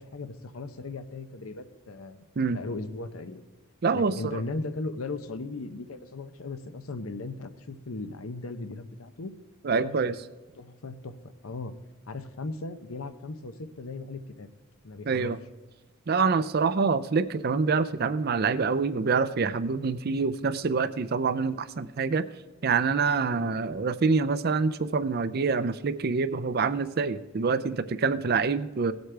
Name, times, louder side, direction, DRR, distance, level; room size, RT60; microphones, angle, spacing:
voice 1, 0.0-2.2 2.5-3.4 3.9-9.3 9.8-9.9 10.5-11.7 12.1-14.5 14.8-15.3 23.4-23.6, left 3 dB, 90° left, 10 dB, 0.8 m, -37 dB
voice 2, 3.8-4.4 9.6-10.2 15.1-15.4 16.1-22.2 22.6-28.9, right 4 dB, 50° right, 14 dB, 0.5 m, -26 dB
17.5 x 8.0 x 3.4 m, 1.2 s
head